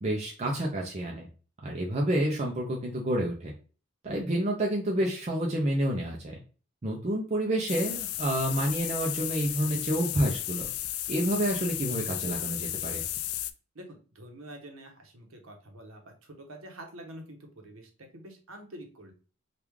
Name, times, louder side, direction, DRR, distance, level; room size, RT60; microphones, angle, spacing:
voice 1, 0.0-1.3 1.6-3.5 4.0-6.4 6.8-10.7 11.1-13.0, right 1 dB, 30° right, -1 dB, 0.4 m, -29 dB
sound 1, 7.7-13.5, left 13 dB, 80° left, 0.3 m, -34 dB
voice 2, 13.7-19.1, right 1 dB, 65° right, 3 dB, 0.9 m, -47 dB
3.1 x 2.4 x 3.5 m, 0.36 s
head